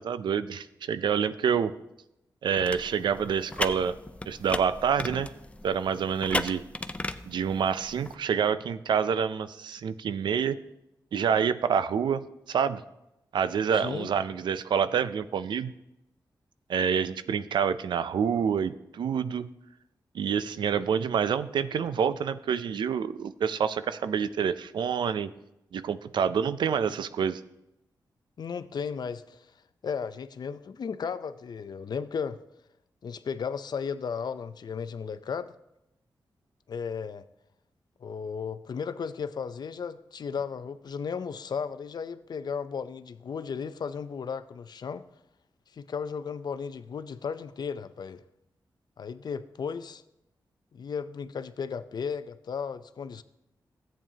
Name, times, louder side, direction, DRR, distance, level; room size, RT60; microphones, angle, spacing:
voice 1, 0.0-1.7 2.4-3.9 4.2-5.3 5.6-6.6 7.3-10.6 11.1-12.8 13.3-15.7 16.7-19.5 20.1-25.3 25.7-27.4, right 7 dB, 85° right, 13 dB, 0.4 m, -27 dB
sound 1, 2.5-8.1, left 2 dB, 15° left, 0.5 m, -36 dB
voice 2, 13.7-14.1 28.4-29.5 29.8-32.4 33.0-35.5 36.7-37.2 38.0-45.0 45.7-48.2 49.0-50.0 50.7-53.2, left 6 dB, 65° left, 13 dB, 0.5 m, -35 dB
13.5 x 8.8 x 2.8 m, 0.87 s
cardioid pair, 70°, 8 cm